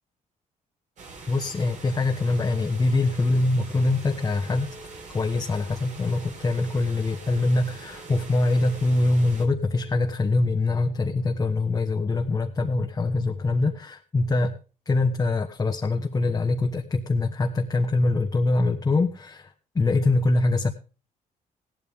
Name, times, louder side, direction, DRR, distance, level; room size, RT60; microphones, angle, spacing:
sound 1, 1.0-9.5, right 4 dB, 55° right, 4.8 m, -44 dB
voice 1, 1.3-4.7 5.1-14.6 14.9-20.7, left 2 dB, 25° left, 2 dB, 1.3 m, -24 dB
sound 2, 4.4-10.1, equal, 85° right, 5.4 m, -51 dB
16.5 x 12.5 x 3.6 m, 0.37 s
cardioid pair, 115°, 15 cm